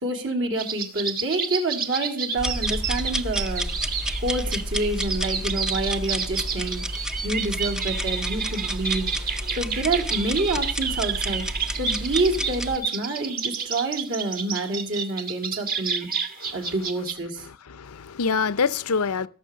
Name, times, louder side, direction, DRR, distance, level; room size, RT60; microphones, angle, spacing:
voice 1, 0.0-3.7 4.2-11.4 11.8-17.5, right 2 dB, 60° right, 3.2 m, -28 dB
sound 1, 0.6-17.1, right 6 dB, 40° right, 1.7 m, -30 dB
sound 2, 2.4-12.8, equal, 5° right, 0.5 m, -31 dB
voice 2, 16.4-16.7 17.5-19.3, left 5 dB, 75° left, 0.6 m, -26 dB
17.5 x 7.0 x 6.3 m
head